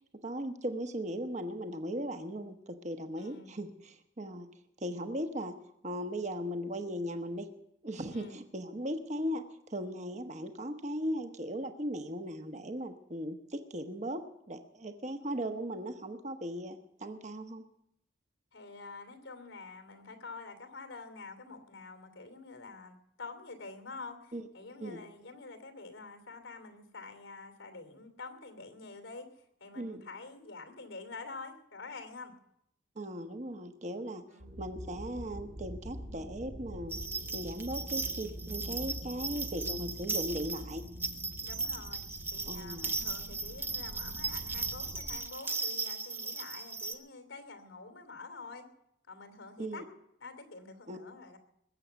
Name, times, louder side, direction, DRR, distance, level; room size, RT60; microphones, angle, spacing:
voice 1, 0.2-4.5 4.8-5.5 5.8-7.5 7.8-17.6 24.3-24.5 24.8-25.0 29.8-30.1 33.0-34.2 34.6-37.0 37.3-40.8 42.5-42.9 49.6-49.8 50.9-51.0, equal, 35° right, 6 dB, 1.1 m, -38 dB
voice 2, 3.2-3.6 8.1-8.4 18.5-29.3 29.6-32.3 34.3-34.5 41.4-42.0 42.3-48.6 49.1-49.8 50.2-51.4, left 3 dB, 90° left, 7 dB, 2.8 m, -47 dB
sound 1, 34.4-45.2, equal, 80° right, 4.7 m, -45 dB
sound 2, 36.9-46.9, right 4 dB, 10° right, 0.6 m, -37 dB
21.0 x 7.9 x 7.0 m, 0.79 s
head